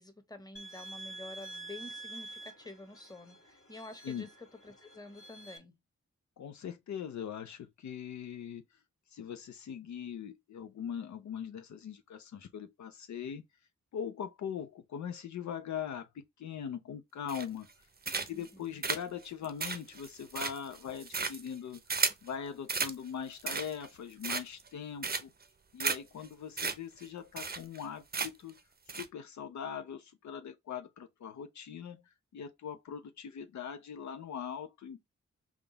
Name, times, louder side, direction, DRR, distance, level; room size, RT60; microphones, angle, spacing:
voice 1, 0.0-5.7 18.3-18.8, left 2 dB, 15° left, 1.0 m, -49 dB
sound 1, 0.5-5.6, right 2 dB, 45° left, 1.4 m, -48 dB
voice 2, 6.4-8.8 9.1-13.4 13.9-17.7 18.3-21.8 22.2-25.3 25.7-28.5 28.9-35.0, left 8 dB, 70° left, 0.5 m, -41 dB
sound 2, 17.3-17.7 18.0-18.5 18.8-22.3 22.7-23.0 23.3-23.9 24.2-24.7 25.0-25.4 25.8-26.0 26.2-26.3 26.6-26.7 27.0-27.1 27.4-27.8 28.1-28.5 28.9-29.1, right 4 dB, 30° right, 0.6 m, -34 dB
3.6 x 2.3 x 3.8 m
cardioid pair, 45°, 30 cm